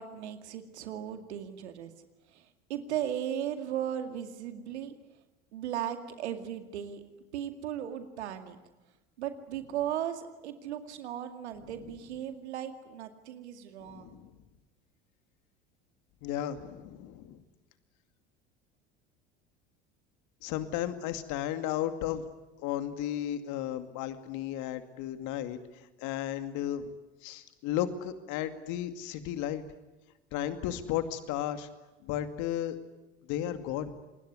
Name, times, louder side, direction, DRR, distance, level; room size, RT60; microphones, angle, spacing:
voice 1, 0.0-1.9 2.3-4.9 5.5-7.0 7.3-8.6 9.2-14.2, right 10 dB, 75° right, 8 dB, 2.3 m, -36 dB
voice 2, 13.8-14.3 16.2-17.4 20.4-22.2 22.6-26.9 27.2-29.6 30.3-31.7 32.0-32.8 33.3-33.9, left 11 dB, 60° left, 9 dB, 2.4 m, -34 dB
27.5 x 20.5 x 9.7 m, 1.1 s
hypercardioid pair, 70°, 33 cm